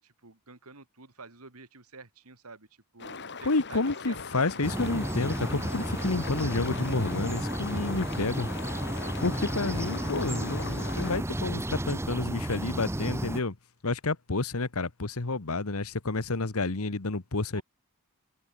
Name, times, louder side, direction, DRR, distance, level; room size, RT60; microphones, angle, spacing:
voice 1, 0.0-2.7 2.9-4.6 17.5-17.6, right 4 dB, 75° right, 3.0 m, -49 dB
sound 1, 3.0-11.2, left 4 dB, 50° left, 4.7 m, -40 dB
voice 2, 3.4-8.5 9.2-13.5 13.8-17.6, left 3 dB, 70° left, 1.3 m, -30 dB
sound 2, 4.6-13.4, right 1 dB, 10° right, 1.1 m, -33 dB
head